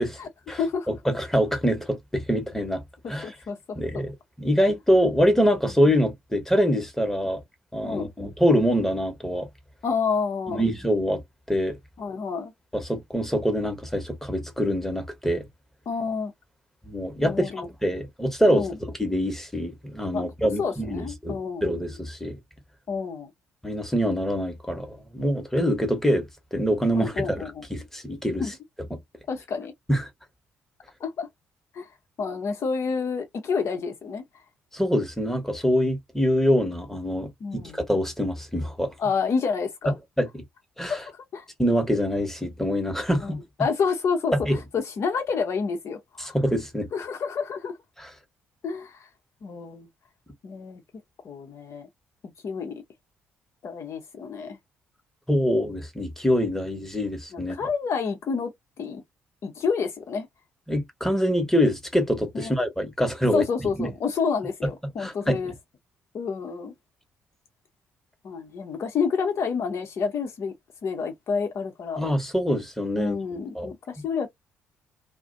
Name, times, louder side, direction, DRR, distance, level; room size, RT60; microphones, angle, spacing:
voice 1, 0.2-1.0 3.2-3.6 3.9-4.0 7.8-8.1 9.8-10.6 12.0-12.5 15.9-16.3 17.2-17.7 18.5-18.8 20.1-20.2 20.6-21.7 22.9-23.3 26.9-27.7 28.4-28.5 29.3-29.7 31.0-31.3 31.7-31.9 32.2-34.2 37.4-37.8 39.0-39.9 40.9-41.4 43.2-43.3 43.6-44.3 44.7-46.4 46.9-47.8 48.6-49.1 49.4-49.9 50.4-50.8 51.2-51.9 52.4-52.8 53.6-54.6 57.3-58.5 58.8-59.0 59.4-60.3 62.3-62.5 63.3-65.5 66.1-66.7 68.2-70.5 70.8-72.0 73.0-74.3, left 5 dB, 45° left, 0.6 m, -29 dB
voice 2, 0.9-2.8 3.1-3.3 3.8-7.4 7.7-9.5 10.5-11.2 11.5-11.8 12.7-15.5 16.8-18.7 19.0-22.4 23.6-27.4 27.7-28.4 29.9-30.0 34.7-38.9 40.2-40.3 40.8-41.0 41.6-43.4 44.4-44.6 46.2-46.9 55.3-57.6 60.7-63.4 63.8-63.9 65.0-65.4 72.0-73.2 73.5-73.7, equal, 5° left, 1.0 m, -25 dB
2.4 x 2.1 x 2.5 m
figure-of-eight pair, 45°, 6 cm